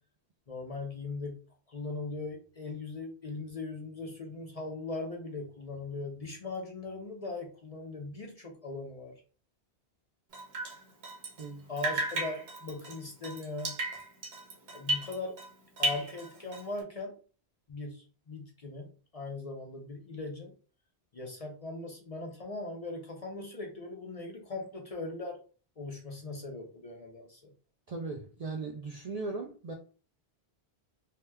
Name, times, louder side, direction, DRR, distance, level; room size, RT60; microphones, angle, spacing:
voice 1, 0.5-1.4 1.7-9.1 11.7-13.8 14.7-15.4 15.8-17.2 17.7-20.5 21.1-25.4 25.8-27.5, left 3 dB, 45° left, 0.6 m, -39 dB
Drip, 10.3-11.5 11.8-15.5 15.8-16.8, right 1 dB, 75° right, 1.0 m, -35 dB
voice 2, 11.4-11.7 27.9-29.7, right 3 dB, 55° right, 0.4 m, -38 dB
2.8 x 2.1 x 3.4 m
omnidirectional pair, 1.1 m